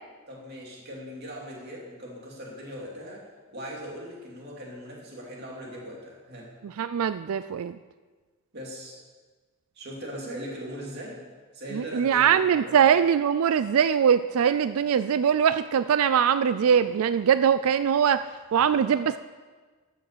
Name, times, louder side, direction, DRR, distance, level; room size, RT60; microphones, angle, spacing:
voice 1, 0.3-3.3 3.5-6.5 8.5-9.0 9.7-11.3 11.5-12.8 18.5-18.7, equal, 45° right, -2 dB, 2.8 m, -40 dB
voice 2, 6.6-7.8 11.7-18.2 18.5-19.2, right 8 dB, 70° right, 13 dB, 0.3 m, -22 dB
13.5 x 6.4 x 6.8 m, 1.4 s
head